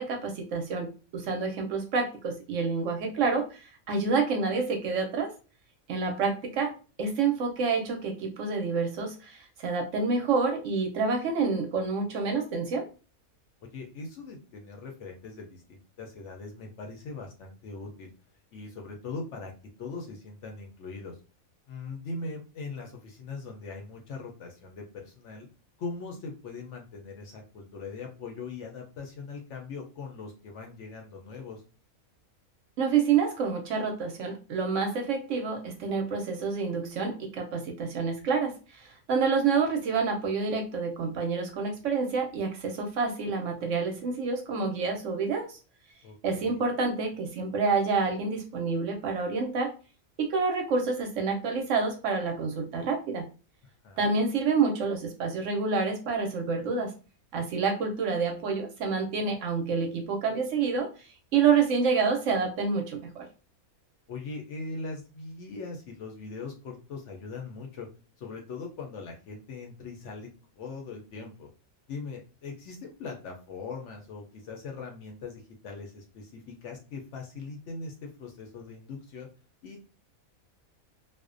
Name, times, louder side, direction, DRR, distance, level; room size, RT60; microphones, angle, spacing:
voice 1, 0.0-5.3 5.9-6.7 7.0-12.9 32.8-45.6 46.2-49.7 50.2-53.3 54.0-56.9 57.3-63.3, right 5 dB, 70° right, 3 dB, 0.8 m, -28 dB
voice 2, 13.6-18.1 18.5-19.5 19.8-21.2 21.7-25.5 25.8-31.6 46.0-46.6 53.8-54.1 64.1-67.9 68.2-70.3 70.6-71.5 71.9-79.3 79.6-79.9, left 4 dB, 65° left, 2 dB, 0.8 m, -40 dB
2.4 x 2.1 x 2.4 m, 0.35 s
omnidirectional pair, 1.5 m